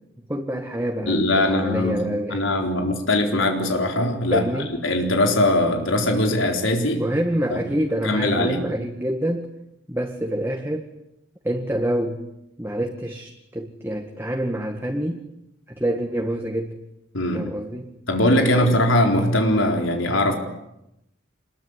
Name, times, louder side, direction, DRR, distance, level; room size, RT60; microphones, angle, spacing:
voice 1, 0.3-2.5 4.3-4.7 7.0-9.5 9.9-10.9 11.4-12.2 12.6-15.2 15.7-16.8 17.3-17.9 18.5-18.8, right 1 dB, 10° right, 2.0 m, -27 dB
voice 2, 1.1-2.0 2.3-4.5 4.8-7.0 7.5-7.6 8.0-8.6 17.1-17.5 18.1-20.3, left 1 dB, 80° left, 4.1 m, -21 dB
27.5 x 22.0 x 9.8 m
head